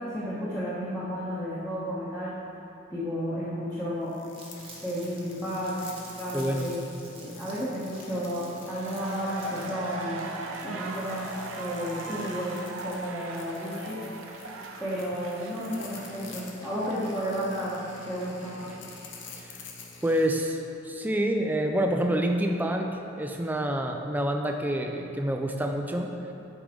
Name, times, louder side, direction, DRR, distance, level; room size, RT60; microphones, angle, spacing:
voice 1, 0.0-2.3 2.9-4.1 4.8-5.8 6.1-6.9 7.2-10.2 10.6-11.3 11.6-12.6 12.8-14.0 14.8-18.7, equal, 10° left, -11 dB, 1.2 m, -32 dB
sound 1, 4.0-20.4, left 4 dB, 60° left, 0.8 m, -48 dB
Crumpling crinkling, 4.3-9.9, right 3 dB, 25° right, 1.1 m, -49 dB
voice 2, 6.3-6.7 19.4-19.6 20.0-20.6 20.8-22.9 23.2-26.1, right 1 dB, 10° right, 3 dB, 0.4 m, -27 dB
sound 2, 8.5-19.3 19.6-19.7, right 3 dB, 75° right, 0.6 m, -40 dB
9.3 x 4.8 x 3.8 m, 2.9 s
head